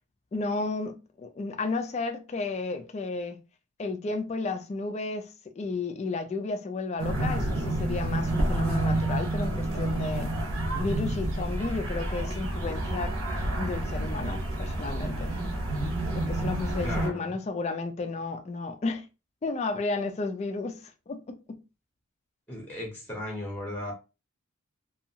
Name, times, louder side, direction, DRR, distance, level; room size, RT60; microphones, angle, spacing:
voice 1, 0.3-3.4 3.8-10.3 10.8-13.1 13.5-15.3 16.1-19.1 19.4-21.6, left 3 dB, 30° left, 0.3 m, -33 dB
sound 1, 7.0-17.1, right 1 dB, 70° right, 0.9 m, -29 dB
voice 2, 16.8-17.4 22.5-23.9, left 1 dB, 10° left, 0.7 m, -36 dB
2.6 x 2.3 x 2.7 m
head